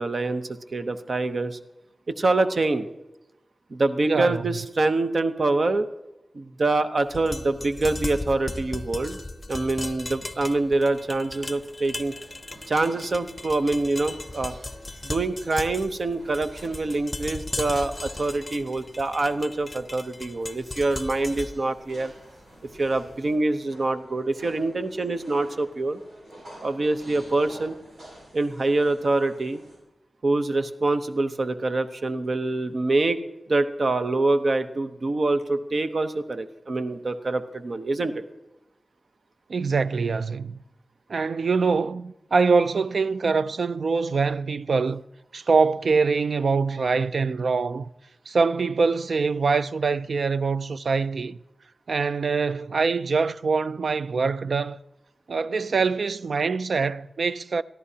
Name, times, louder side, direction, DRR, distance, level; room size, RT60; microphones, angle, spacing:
voice 1, 0.0-1.6 2.1-2.9 3.7-5.9 6.3-9.2 9.5-12.1 12.7-14.5 15.0-22.1 22.8-26.0 26.6-27.8 28.3-29.6 30.2-38.2, right 2 dB, 55° right, 0.8 m, -25 dB
voice 2, 4.0-4.4 39.5-40.6 41.1-45.0 45.3-47.9 48.3-51.4 51.9-54.8 55.3-57.6, right 4 dB, 75° right, 0.4 m, -24 dB
sound 1, 7.1-23.1, left 2 dB, 25° left, 0.7 m, -37 dB
sound 2, 10.7-29.8, equal, 90° right, 6.2 m, -51 dB
22.0 x 13.5 x 2.8 m
wide cardioid pair, 90°, 0 cm